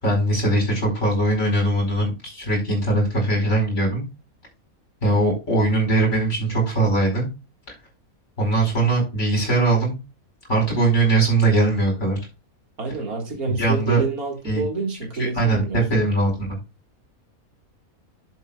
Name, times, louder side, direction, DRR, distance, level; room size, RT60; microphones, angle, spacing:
voice 1, 0.0-4.0 5.0-7.3 8.4-10.0 10.5-12.2 13.6-14.0 14.5-14.6 15.2-16.5, right 2 dB, 55° left, 5.3 m, -20 dB
voice 2, 12.8-15.8, right 4 dB, 85° right, 2.5 m, -28 dB
11.0 x 7.6 x 2.4 m
omnidirectional pair, 1.5 m